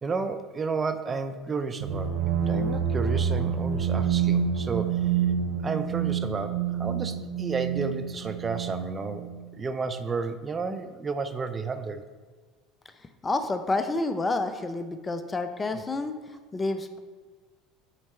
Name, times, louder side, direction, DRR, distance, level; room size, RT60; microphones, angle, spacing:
voice 1, 0.0-5.2 5.6-9.3 9.6-12.0, right 4 dB, 30° right, 9 dB, 0.6 m, -32 dB
sound 1, 1.8-9.5, right 7 dB, 70° right, 0.7 m, -27 dB
voice 2, 13.2-17.0, left 2 dB, 25° left, 9 dB, 0.6 m, -29 dB
9.9 x 4.3 x 3.2 m, 1.4 s
hypercardioid pair, 75°, 0 cm